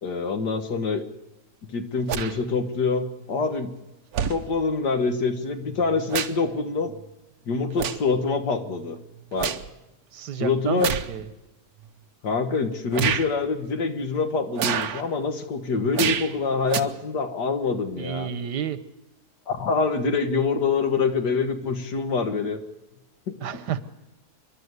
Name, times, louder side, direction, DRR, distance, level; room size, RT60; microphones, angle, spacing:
voice 1, 0.0-1.0 1.7-3.7 4.3-6.9 7.5-9.0 9.3-9.5 10.4-11.0 12.2-18.3 19.5-22.6 23.3-23.4, left 4 dB, 90° left, 8 dB, 2.1 m, -25 dB
sound 1, 2.1-2.3 3.4-3.5 4.1-4.4 5.6-6.5 6.9-7.1 7.7-8.1 8.6-9.7 10.8-11.1 11.8-11.9 12.9-13.3 14.5-15.0 15.9-16.3 16.7-16.8, right 8 dB, 65° right, 1.4 m, -28 dB
voice 2, 10.1-11.3 18.0-18.8 23.4-23.8, right 9 dB, 90° right, 15 dB, 1.6 m, -31 dB
28.0 x 11.5 x 8.1 m, 0.99 s
omnidirectional pair, 1.7 m